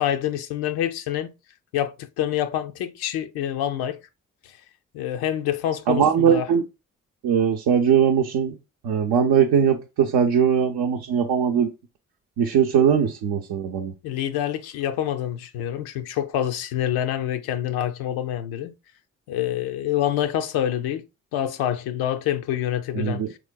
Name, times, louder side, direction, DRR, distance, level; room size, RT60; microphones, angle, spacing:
voice 1, 0.0-1.3 1.7-4.0 4.9-6.5 14.0-18.7 19.3-21.0 21.3-23.4, left 11 dB, 75° left, 0.5 m, -26 dB
voice 2, 5.9-6.6 7.2-8.6 8.8-11.7 12.4-13.9 22.9-23.3, right 8 dB, 70° right, 0.6 m, -20 dB
3.8 x 3.0 x 2.2 m
hypercardioid pair, 40°, 38 cm